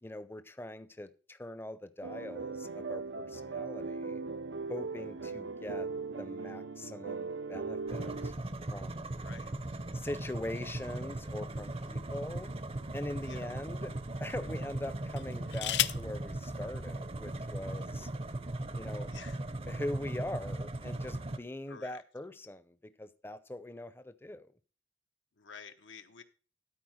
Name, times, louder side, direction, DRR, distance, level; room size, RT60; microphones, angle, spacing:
voice 1, 0.0-4.2 4.7-5.9 6.2-8.3 8.7-9.1 9.9-12.5 12.9-13.9 14.2-18.1 18.7-19.1 19.7-24.5, left 1 dB, 10° left, 0.6 m, -42 dB
sound 1, 2.0-8.3, right 4 dB, 80° right, 0.6 m, -39 dB
sound 2, 7.9-21.4, right 1 dB, 30° right, 0.6 m, -38 dB
voice 2, 9.1-9.8 11.8-11.9 13.2-13.5 15.5-15.6 19.1-19.4 21.7-22.0 25.4-26.2, left 6 dB, 90° left, 1.1 m, -51 dB
sound 3, 11.4-12.6 13.3-13.5 15.1-16.2 17.3-17.4 17.7-18.1, left 13 dB, 65° left, 0.5 m, -35 dB
12.5 x 4.6 x 6.2 m
head